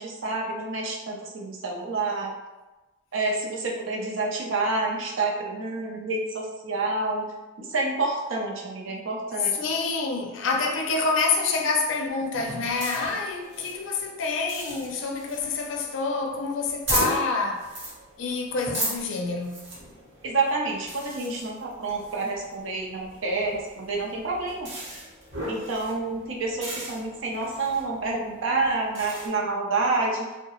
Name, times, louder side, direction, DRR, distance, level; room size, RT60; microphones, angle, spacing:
voice 1, 0.0-2.3 3.1-7.2 7.6-9.6 20.2-24.7 25.5-30.3, right 3 dB, 85° right, 0.6 m, -28 dB
voice 2, 9.4-17.7 18.2-19.7, left 4 dB, 80° left, 0.4 m, -27 dB
sound 1, 12.3-29.3, right 1 dB, 70° right, 1.0 m, -37 dB
2.7 x 2.1 x 2.9 m
head